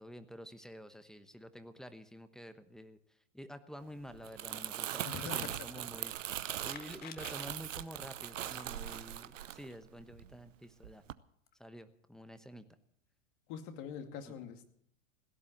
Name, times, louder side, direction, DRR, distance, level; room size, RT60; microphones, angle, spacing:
voice 1, 0.0-3.0 3.3-11.0 11.6-12.6 14.3-14.4, equal, ahead, 11 dB, 1.1 m, -49 dB
Crumpling crinkling, 4.1-10.5 10.8-11.1, right 11 dB, 80° right, 0.8 m, -41 dB
voice 2, 5.0-5.8 13.5-14.7, left 7 dB, 45° left, 6 dB, 2.5 m, -44 dB
sound 1, 5.3-5.6 6.6-7.5 8.4-8.7 11.2-11.3 11.5-11.6 12.7-12.8, left 8 dB, 25° left, 1.3 m, -51 dB
17.0 x 11.0 x 7.2 m, 0.68 s
hypercardioid pair, 110°, 38 cm